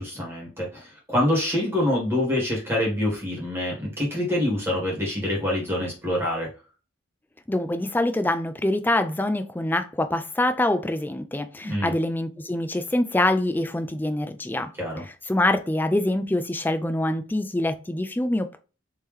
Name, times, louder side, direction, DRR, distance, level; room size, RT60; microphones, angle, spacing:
voice 1, 0.0-6.5 11.6-11.9 14.8-15.0, left 1 dB, 10° right, 1.4 m, -26 dB
voice 2, 7.5-14.7 15.3-18.6, left 1 dB, 10° left, 0.3 m, -25 dB
3.6 x 2.8 x 3.1 m
head